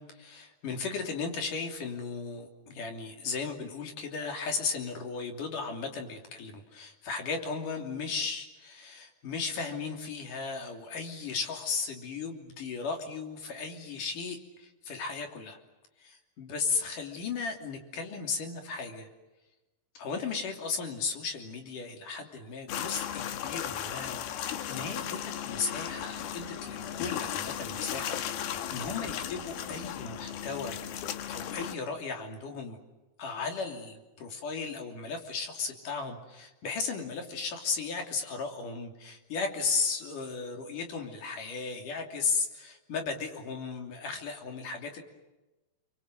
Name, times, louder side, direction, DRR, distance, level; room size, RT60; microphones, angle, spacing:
voice 1, 0.0-15.6 16.0-19.1 19.9-32.8 33.2-45.0, left 4 dB, 60° left, 4 dB, 4.5 m, -35 dB
sound 1, 22.7-31.8, left 10 dB, 85° left, 3.3 m, -36 dB
30.0 x 24.5 x 7.7 m, 1.1 s
omnidirectional pair, 4.2 m